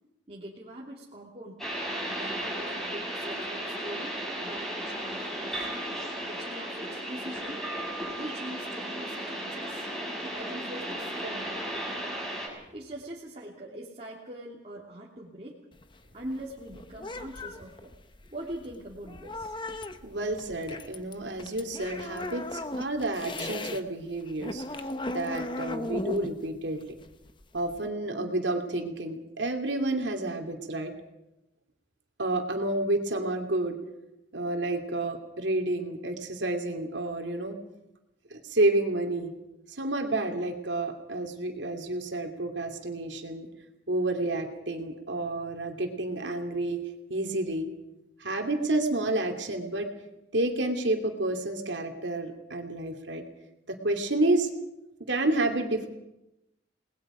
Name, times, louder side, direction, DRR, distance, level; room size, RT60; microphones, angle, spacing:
voice 1, 0.3-1.7 2.2-4.1 4.4-5.6 6.2-7.6 8.1-9.9 10.3-11.9 12.7-15.6 16.1-17.9 18.3-19.6, right 1 dB, 30° right, -5 dB, 2.9 m, -42 dB
sound 1, 1.6-12.5, right 1 dB, ahead, 7.2 m, -35 dB
sound 2, 15.7-23.8 24.1-27.9, left 2 dB, 25° left, 1.1 m, -37 dB
voice 2, 20.0-24.9 25.1-26.8 27.5-30.9 32.2-33.8 34.3-37.6 38.3-39.3 39.7-43.5 43.9-46.8 47.1-47.7 48.2-49.9 50.3-53.2 53.7-54.5 55.1-55.9, right 2 dB, 75° right, 4 dB, 2.8 m, -30 dB
29.5 x 20.0 x 5.1 m, 0.93 s
head